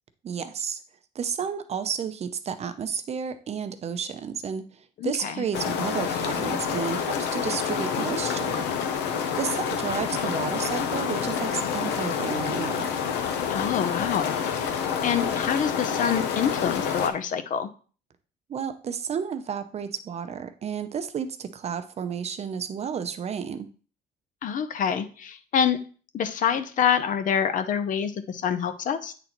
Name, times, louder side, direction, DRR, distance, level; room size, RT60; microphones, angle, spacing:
voice 1, 0.2-0.8 1.1-8.7 9.4-12.9 18.5-23.7, right 7 dB, 40° right, 10 dB, 0.6 m, -32 dB
voice 2, 5.0-5.4 13.5-17.7 24.4-25.8 26.1-29.1, left 8 dB, 50° left, 11 dB, 0.6 m, -26 dB
sound 1, 5.5-17.1, left 7 dB, 90° left, 0.7 m, -28 dB
8.6 x 4.0 x 2.9 m, 0.39 s
cardioid pair, 110°, 17 cm